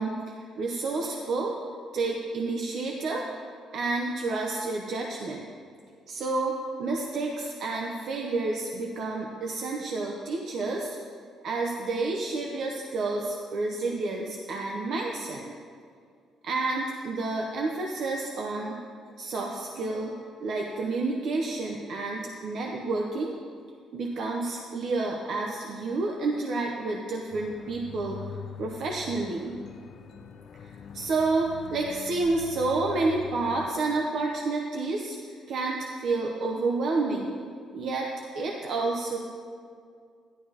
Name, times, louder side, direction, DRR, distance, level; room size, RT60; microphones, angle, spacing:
voice 1, 0.0-1.5 1.9-3.3 3.7-5.5 6.1-11.0 11.4-15.5 16.4-18.8 19.2-23.3 23.9-28.2 28.6-29.6 30.6-37.4 37.7-39.2, right 3 dB, 50° right, 0 dB, 0.8 m, -30 dB
sound 1, 27.3-33.7, left 8 dB, 45° left, 0.5 m, -43 dB
14.0 x 11.5 x 2.9 m, 2.2 s
cardioid pair, 170°, 0 cm